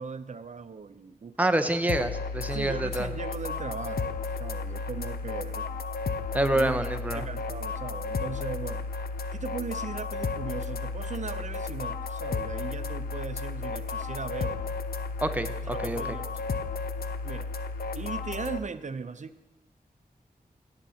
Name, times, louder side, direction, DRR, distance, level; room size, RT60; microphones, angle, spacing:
voice 1, 0.0-1.4 2.5-5.7 6.5-6.7 7.1-8.9 9.3-14.7 15.6-16.4 17.2-17.5 17.9-19.5, right 5 dB, 50° right, 12 dB, 0.6 m, -38 dB
voice 2, 1.4-3.1 6.3-7.3 15.2-16.0, right 1 dB, 10° right, 7 dB, 0.8 m, -27 dB
sound 1, 1.9-18.6, left 4 dB, 80° left, 0.5 m, -33 dB
16.5 x 7.6 x 2.8 m, 1.1 s
cardioid pair, 50°, 16 cm